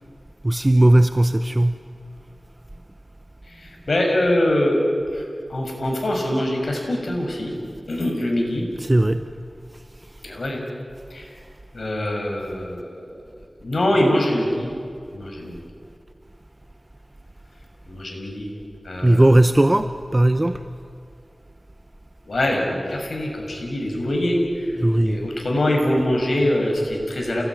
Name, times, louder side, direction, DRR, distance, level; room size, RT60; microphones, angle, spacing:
voice 1, 0.4-1.8 8.8-9.2 19.0-20.6 24.8-25.3, right 1 dB, 25° right, 10 dB, 0.8 m, -17 dB
voice 2, 3.5-4.8 5.1-5.2 5.5-7.5 7.9-8.6 10.2-10.6 11.1-11.3 11.7-13.0 13.6-14.7 15.1-15.6 17.9-18.5 18.8-19.3 22.3-27.4, left 1 dB, 75° left, 0 dB, 6.3 m, -23 dB
28.5 x 19.5 x 9.8 m, 2.4 s
wide cardioid pair, 65°, 0 cm